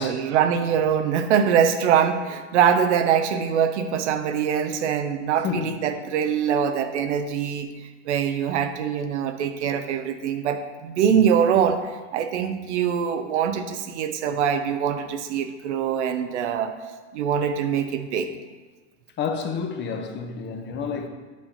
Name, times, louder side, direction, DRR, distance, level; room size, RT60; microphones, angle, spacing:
voice 1, 0.0-11.8 12.1-16.7 17.1-18.3 20.9-21.0, right 8 dB, 80° right, 0.6 m, -23 dB
voice 2, 5.4-5.8 19.2-21.1, left 6 dB, 30° left, 0.7 m, -29 dB
7.4 x 5.6 x 2.7 m
hypercardioid pair, 110°, 34 cm